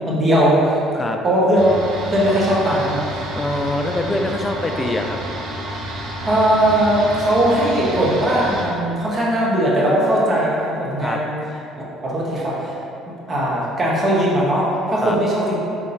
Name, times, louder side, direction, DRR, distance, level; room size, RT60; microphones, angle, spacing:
voice 1, 0.1-0.8 1.2-1.7 2.1-3.2 6.2-11.4 12.0-12.7 13.3-15.6, right 1 dB, 40° right, -6 dB, 1.2 m, -19 dB
sound 1, 1.6-8.7, right 1 dB, 65° right, 0.7 m, -30 dB
voice 2, 3.3-5.2 11.0-11.2 15.0-15.2, left 2 dB, 20° left, 4 dB, 0.4 m, -24 dB
4.4 x 3.6 x 2.7 m, 2.7 s
hypercardioid pair, 65°, 0 cm